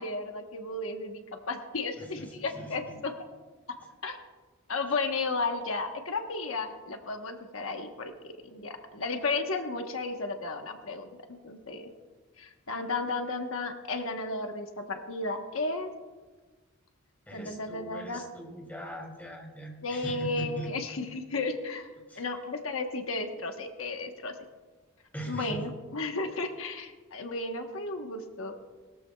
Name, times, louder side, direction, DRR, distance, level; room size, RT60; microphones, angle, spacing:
voice 1, 0.0-3.1 4.0-4.2 4.7-11.9 12.4-15.9 17.3-18.2 19.8-21.9 22.2-24.3 25.3-28.5, left 3 dB, 85° left, 4 dB, 1.1 m, -34 dB
voice 2, 2.0-3.0 17.3-20.7 22.1-22.3 25.1-25.7, right 1 dB, 10° left, -1 dB, 2.7 m, -40 dB
21.0 x 14.0 x 2.3 m, 1.3 s
head